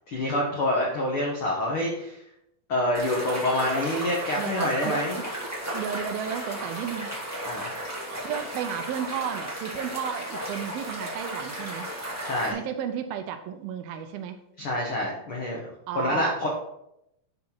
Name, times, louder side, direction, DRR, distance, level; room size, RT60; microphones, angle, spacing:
voice 1, 0.1-2.2 2.7-5.2 7.4-7.7 12.2-12.6 14.6-15.7 15.9-16.5, left 1 dB, 80° left, -2 dB, 1.2 m, -27 dB
sound 1, 2.9-12.5, right 1 dB, 10° right, 0.8 m, -34 dB
voice 2, 4.4-5.3 5.6-7.1 8.2-11.9 12.5-14.4 15.9-16.5, right 8 dB, 80° right, 8 dB, 2.4 m, -33 dB
11.5 x 4.1 x 4.4 m, 0.81 s
omnidirectional pair, 4.5 m